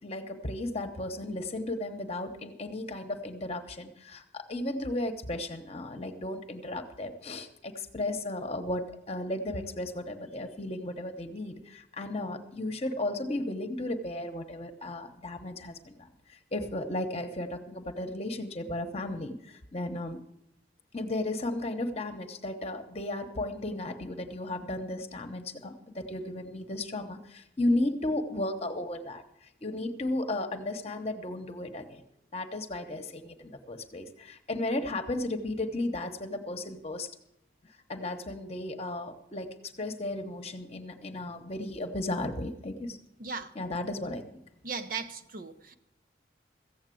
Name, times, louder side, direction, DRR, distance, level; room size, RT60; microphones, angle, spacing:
voice 1, 0.0-20.2 20.9-32.0 32.3-37.1 37.9-43.0 43.5-44.2, left 1 dB, 35° left, 6 dB, 1.0 m, -34 dB
voice 2, 43.2-43.5 44.6-45.7, right 4 dB, 50° right, 8 dB, 0.8 m, -37 dB
15.0 x 8.0 x 7.7 m, 0.81 s
head